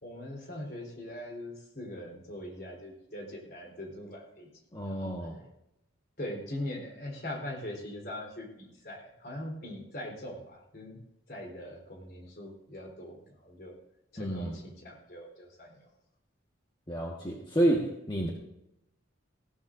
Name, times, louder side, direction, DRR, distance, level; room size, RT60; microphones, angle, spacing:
voice 1, 0.0-4.5 4.9-5.1 6.2-11.0 11.3-13.8 14.1-15.8, left 1 dB, 50° left, 0 dB, 3.9 m, -41 dB
voice 2, 4.7-5.4 14.2-14.6 16.9-18.3, right 1 dB, 25° left, -2 dB, 1.5 m, -29 dB
19.0 x 15.5 x 2.6 m, 0.85 s
head